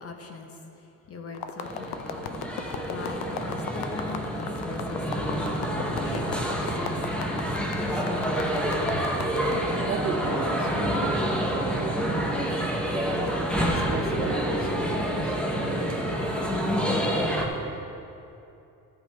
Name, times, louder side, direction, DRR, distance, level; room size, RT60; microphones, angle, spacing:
voice 1, 0.0-2.2 2.9-8.6 8.9-9.1, left 3 dB, 40° left, 3 dB, 0.8 m, -41 dB
sound 1, 1.3-9.6, left 8 dB, 80° left, 0.7 m, -37 dB
sound 2, 1.6-17.4, equal, 5° left, 0.8 m, -28 dB
voice 2, 9.9-12.3 13.4-16.6 17.4-17.7, right 4 dB, 35° right, 3 dB, 0.8 m, -36 dB
13.0 x 8.0 x 3.3 m, 2.8 s
cardioid pair, 145°, 37 cm